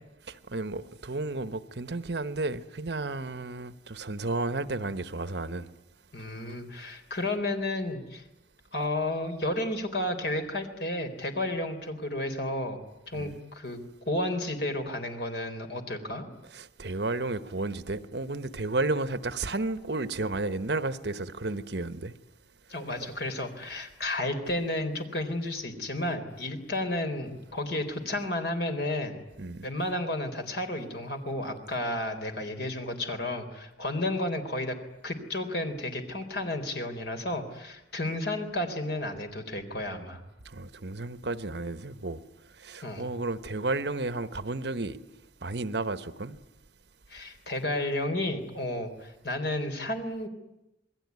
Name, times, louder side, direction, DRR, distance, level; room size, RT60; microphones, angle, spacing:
voice 1, 0.3-5.7 13.1-13.4 16.5-22.1 29.4-29.7 40.4-42.2 42.6-45.0 45.4-46.4, right 2 dB, 65° right, 1.1 m, -32 dB
voice 2, 6.1-8.2 8.7-12.8 13.1-13.8 14.1-16.3 22.7-29.2 29.6-34.7 35.0-40.2 42.8-43.1 47.1-50.3, left 1 dB, 65° left, 4.0 m, -32 dB
28.0 x 20.5 x 9.6 m
head